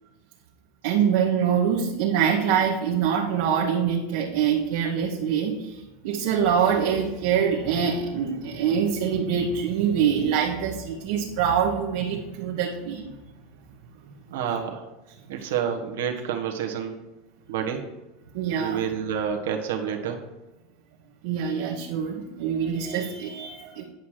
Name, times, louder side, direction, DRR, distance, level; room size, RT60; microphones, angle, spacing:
voice 1, 0.8-13.1 15.4-15.5 18.3-18.8 21.2-23.8, right 7 dB, 65° right, -1 dB, 1.1 m, -24 dB
voice 2, 14.3-14.9 15.3-17.0 17.5-17.9 18.6-20.2, right 8 dB, 90° right, 2 dB, 1.2 m, -28 dB
9.3 x 5.8 x 4.9 m, 1.1 s
supercardioid pair, 155°, 0 cm